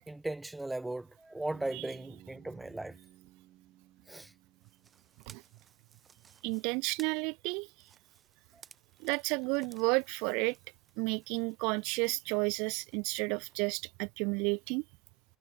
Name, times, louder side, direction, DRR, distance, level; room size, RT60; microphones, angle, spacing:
voice 1, 0.1-3.0 4.1-4.3 8.5-8.6, right 2 dB, 10° right, 0.9 m, -38 dB
Bass guitar, 1.5-5.5, right 15 dB, 55° right, 3.9 m, -58 dB
sound 1, 4.5-13.8, right 6 dB, 25° right, 6.6 m, -61 dB
voice 2, 6.4-7.7 9.0-10.6 11.0-14.8, right 30 dB, 75° right, 0.6 m, -32 dB
cardioid pair, 120°, 0 cm